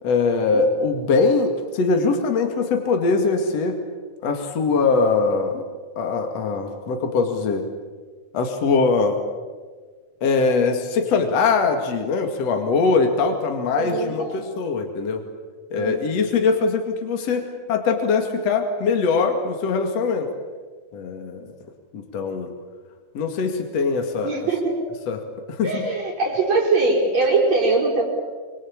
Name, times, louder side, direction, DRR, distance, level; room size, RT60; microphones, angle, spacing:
voice 1, 0.0-3.8 4.2-5.6 6.0-7.7 8.3-9.2 10.2-15.2 15.7-20.3 20.9-21.5 21.9-22.5 23.1-24.3 25.1-25.2 25.5-25.8, left 4 dB, 55° left, 4 dB, 3.2 m, -22 dB
voice 2, 13.7-14.4 15.8-16.3 24.2-24.8 25.6-28.0, right 3 dB, 60° right, -3 dB, 5.9 m, -22 dB
25.5 x 25.5 x 8.8 m, 1.5 s
omnidirectional pair, 3.5 m